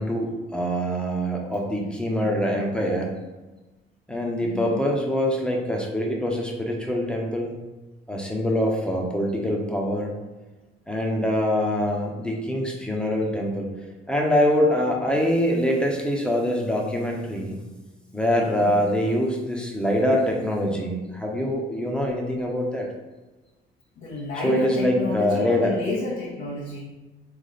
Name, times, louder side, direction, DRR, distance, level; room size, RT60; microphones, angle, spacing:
voice 1, 0.0-3.1 4.1-7.5 8.1-10.2 10.9-13.7 14.1-17.6 18.1-22.9 24.4-25.7, equal, 5° left, 0 dB, 0.9 m, -24 dB
voice 2, 2.0-2.4 4.3-4.9 15.0-15.2 18.5-18.9 24.0-26.8, left 2 dB, 75° left, -9 dB, 1.2 m, -31 dB
3.3 x 3.1 x 4.0 m, 1.1 s
cardioid pair, 90°, 20 cm